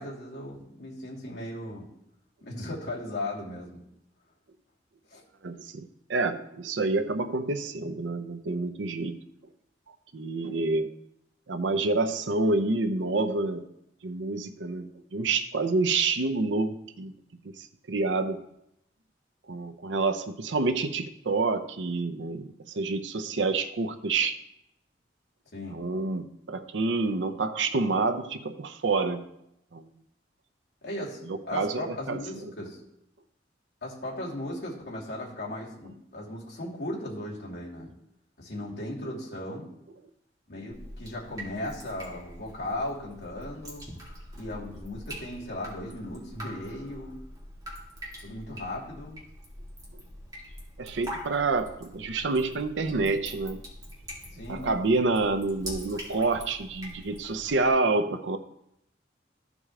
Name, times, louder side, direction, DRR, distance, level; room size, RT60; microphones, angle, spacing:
voice 1, 0.0-1.9 2.4-3.8 5.1-5.2 25.5-25.8 30.8-32.8 33.8-37.9 38.4-39.7 40.5-43.9 44.3-47.2 48.2-49.2 54.3-54.7, left 1 dB, 65° left, 2.7 m, -37 dB
voice 2, 5.4-9.2 10.1-10.9 11.5-13.7 14.0-17.1 17.4-18.4 19.5-24.4 25.7-29.2 29.7-29.9 31.3-32.5 50.8-53.6 54.5-58.4, right 3 dB, 90° right, 0.6 m, -28 dB
Drip, 40.7-57.7, equal, 20° right, 2.3 m, -44 dB
14.0 x 4.9 x 3.7 m
head